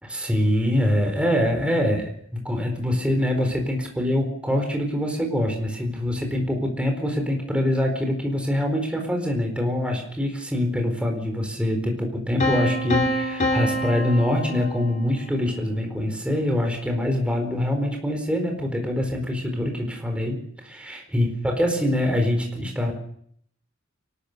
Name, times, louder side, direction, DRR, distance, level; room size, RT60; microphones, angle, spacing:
voice 1, 0.0-22.9, left 1 dB, 5° right, 2 dB, 4.4 m, -24 dB
Piano, 12.4-15.3, equal, 35° left, 3.1 m, -26 dB
29.0 x 13.5 x 6.8 m, 0.66 s
head